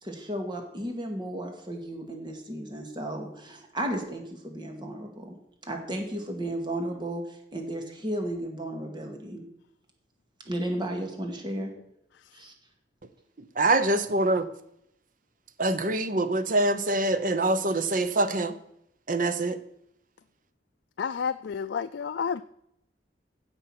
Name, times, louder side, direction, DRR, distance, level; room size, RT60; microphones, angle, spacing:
voice 1, 0.0-5.3 5.6-9.4 10.5-11.7 12.3-12.5, right 1 dB, 25° right, 2.0 m, -34 dB
voice 2, 13.6-14.4 15.6-18.5 19.1-19.6, right 2 dB, 50° right, 0.9 m, -24 dB
voice 3, 21.0-22.4, left 6 dB, 80° left, 0.4 m, -30 dB
16.0 x 5.5 x 6.0 m
head